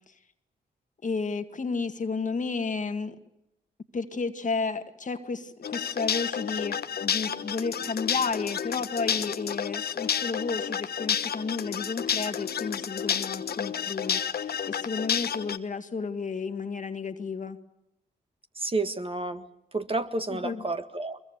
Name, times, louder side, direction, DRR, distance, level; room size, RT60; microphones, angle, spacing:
voice 1, 1.0-3.2 3.9-17.6 20.3-20.6, left 4 dB, 45° left, 8 dB, 1.9 m, -32 dB
sound 1, 5.6-15.6, left 8 dB, 60° left, 1.1 m, -30 dB
voice 2, 18.5-19.4 19.7-21.2, right 2 dB, 30° right, 8 dB, 1.8 m, -30 dB
22.5 x 22.5 x 8.1 m, 0.87 s
supercardioid pair, 50°, 19 cm